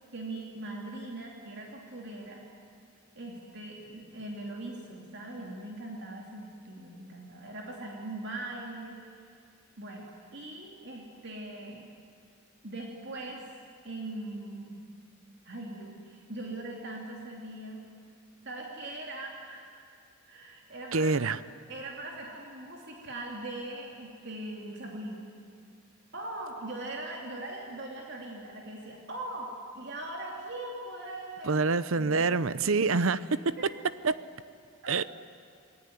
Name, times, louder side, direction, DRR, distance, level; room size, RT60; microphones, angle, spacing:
voice 1, 0.1-2.4 3.2-9.0 9.8-11.9 12.6-13.4 13.8-14.8 15.4-17.8 18.4-20.0 20.3-21.3 21.7-25.3 26.1-32.3 32.6-32.9 33.6-33.7 34.8-34.9, right 2 dB, 50° right, -1 dB, 3.0 m, -41 dB
voice 2, 20.9-21.4 31.5-33.6 34.0-34.2 34.9-35.0, right 4 dB, 70° right, 16 dB, 0.8 m, -26 dB
28.0 x 21.0 x 9.5 m, 2.4 s
head